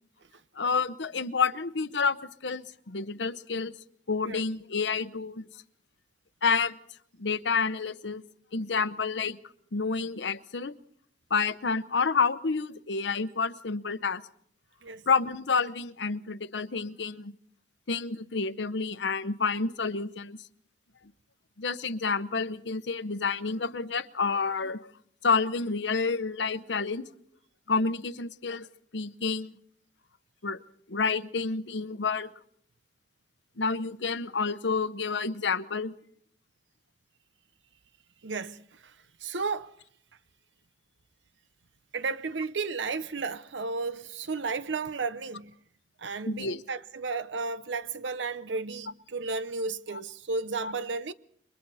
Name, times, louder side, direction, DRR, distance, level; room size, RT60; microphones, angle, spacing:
voice 1, 0.6-2.2 2.4-3.7 4.1-5.5 6.4-6.8 7.2-8.2 8.5-9.4 9.7-10.7 11.3-14.2 15.1-17.3 17.9-20.4 21.6-24.8 25.2-27.1 27.7-28.7 28.9-29.5 30.4-30.6 30.9-32.3 33.6-35.9 46.3-46.6 50.6-50.7, left 4 dB, 75° left, 0.9 m, -29 dB
voice 2, 38.2-39.0 39.2-39.8 41.9-45.5 46.0-51.1, right 4 dB, 85° right, 0.8 m, -33 dB
28.5 x 24.0 x 4.2 m
head